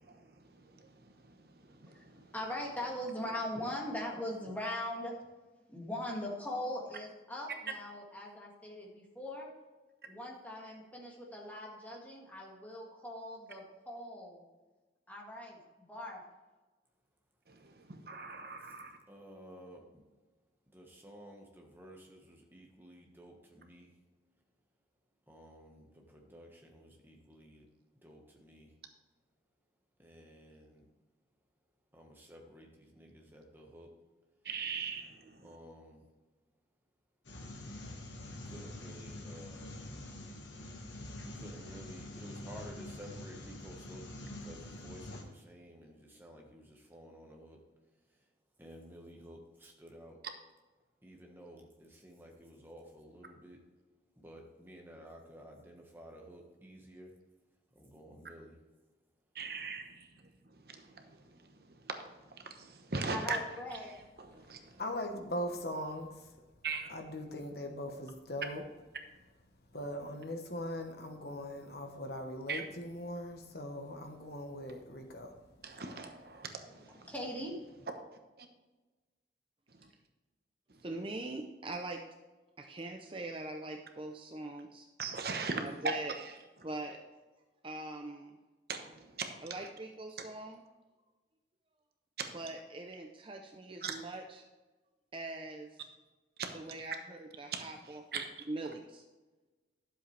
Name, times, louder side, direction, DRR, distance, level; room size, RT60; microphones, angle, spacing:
voice 1, 0.0-2.3 17.5-19.0 34.4-35.5 59.3-60.1 60.5-63.4 63.7-64.8 66.6-66.9 72.5-72.6 75.6-77.1 78.4-78.5 80.7-80.8 85.0-86.3 88.7-89.3 89.6-89.7 92.2-92.3 93.8-93.9 96.4-96.5 97.5-97.6 97.9-98.3, right 4 dB, 55° right, 1.0 m, -40 dB
voice 2, 2.3-5.2 5.7-9.5 10.1-14.4 15.1-15.6 15.9-16.2 63.1-63.9 77.1-77.6, left 1 dB, 10° left, 1.9 m, -40 dB
voice 3, 19.1-20.1 20.7-24.0 25.3-27.7 28.0-28.8 30.0-30.9 31.9-34.1 35.4-36.1 38.3-39.9 41.2-48.3 48.6-50.3 51.0-53.6 54.1-57.2 57.7-58.6, equal, 10° right, 1.4 m, -53 dB
sound 1, 37.2-45.2, left 1 dB, 85° left, 1.6 m, -46 dB
voice 4, 64.8-66.3 66.9-68.6 69.7-75.4, left 1 dB, 60° left, 1.2 m, -40 dB
voice 5, 80.8-82.0 82.6-84.9 85.6-86.1 86.6-87.0 87.6-88.4 89.4-90.6 92.3-94.5 95.1-95.8 96.5-98.2 98.5-99.1, right 2 dB, 30° right, 0.6 m, -42 dB
11.5 x 7.6 x 3.3 m
head